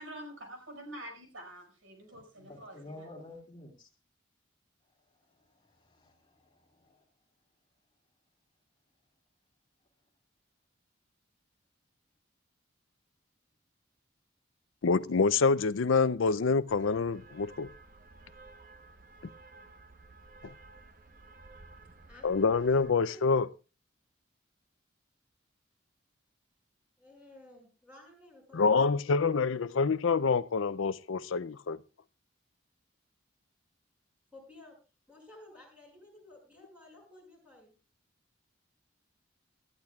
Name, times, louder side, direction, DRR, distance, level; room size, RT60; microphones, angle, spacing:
voice 1, 0.0-3.1, right 1 dB, 80° right, 5.3 m, -46 dB
voice 2, 2.5-3.9 5.2-7.0, left 1 dB, 25° left, 2.4 m, -51 dB
voice 3, 14.8-17.7 20.4-20.5 22.2-23.5 28.5-31.8, left 4 dB, 75° left, 0.5 m, -26 dB
sound 1, 16.7-22.9, right 3 dB, 45° right, 1.1 m, -54 dB
voice 4, 22.1-23.4 27.0-28.8 34.3-34.8 35.1-37.7, left 1 dB, 5° right, 6.0 m, -54 dB
19.0 x 13.5 x 2.4 m
head